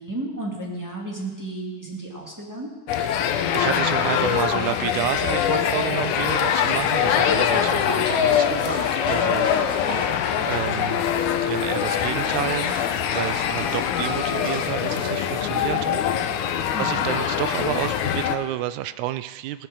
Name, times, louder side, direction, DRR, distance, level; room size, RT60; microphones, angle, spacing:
voice 1, 0.0-2.7 16.7-17.1, right 2 dB, 10° right, -4 dB, 1.3 m, -33 dB
sound 1, 2.9-18.4, left 8 dB, 80° left, 2.1 m, -23 dB
voice 2, 2.9-9.5 10.4-11.1 11.4-19.7, right 13 dB, 80° right, 13 dB, 1.8 m, -30 dB
sound 2, 8.2-15.1, left 1 dB, 25° left, 2.5 m, -37 dB
17.0 x 7.3 x 6.3 m, 1.3 s
omnidirectional pair, 3.7 m